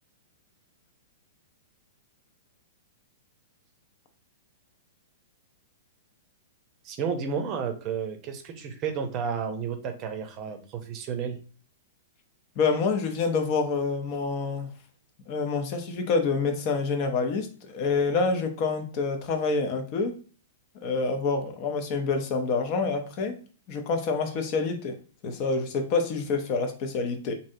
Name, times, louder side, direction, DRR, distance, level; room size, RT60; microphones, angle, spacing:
voice 1, 6.8-11.4, right 6 dB, 40° right, 0.6 m, -32 dB
voice 2, 12.6-14.7 15.3-20.2 20.8-23.4 23.7-24.9 25.2-27.4, left 4 dB, 45° left, 0.7 m, -27 dB
3.1 x 2.7 x 2.7 m
hypercardioid pair, 115°, 0 cm